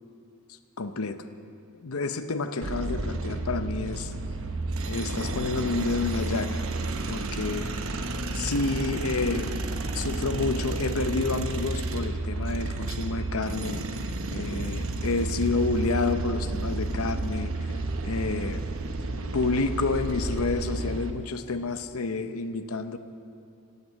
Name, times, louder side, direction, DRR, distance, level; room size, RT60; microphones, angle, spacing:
voice 1, 0.8-1.3 1.7-4.1 4.9-6.6 7.1-7.7 8.3-9.5 9.9-13.8 14.3-17.7 18.0-18.6 19.3-23.0, left 3 dB, 75° left, 9 dB, 0.8 m, -29 dB
sound 1, 2.6-21.1, right 2 dB, 65° right, 1.0 m, -31 dB
15.0 x 9.4 x 8.5 m, 2.4 s
head